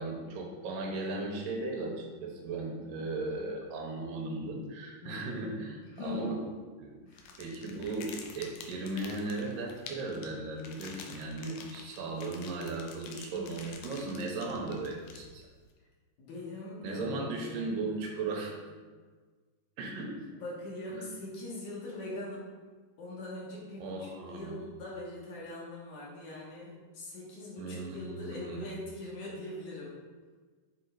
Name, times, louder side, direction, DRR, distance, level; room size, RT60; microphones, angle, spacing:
voice 1, 0.0-6.4 6.8-7.0 7.4-15.4 16.8-18.5 19.8-20.2 23.8-24.6 27.6-28.6, right 2 dB, 85° right, 0 dB, 2.6 m, -37 dB
voice 2, 5.0-5.5 5.8-6.5 7.0-7.3 13.2-13.6 16.2-18.4 20.3-22.5 23.0-30.0, left 1 dB, 65° left, -5 dB, 2.7 m, -42 dB
sound 1, 7.1-15.6, left 5 dB, 85° left, 2.4 m, -48 dB
7.1 x 3.8 x 4.6 m, 1.4 s
omnidirectional pair, 3.8 m